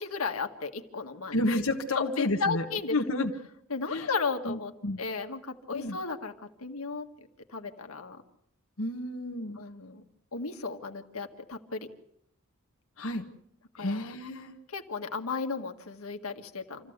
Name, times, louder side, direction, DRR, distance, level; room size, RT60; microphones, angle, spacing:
voice 1, 0.0-1.4 1.9-3.0 3.7-4.7 5.0-6.3 6.6-7.1 7.5-8.2 9.6-10.0 10.3-11.9 13.8-14.0 14.7-16.9, left 4 dB, 85° left, 5 dB, 1.8 m, -34 dB
voice 2, 1.3-2.6 2.9-3.3 3.9-4.1 4.4-4.6 4.8-5.0 5.7-6.0 8.8-9.6 13.0-13.3 13.8-14.5, left 2 dB, 65° left, 1 dB, 1.3 m, -30 dB
27.0 x 14.5 x 8.0 m, 0.75 s
head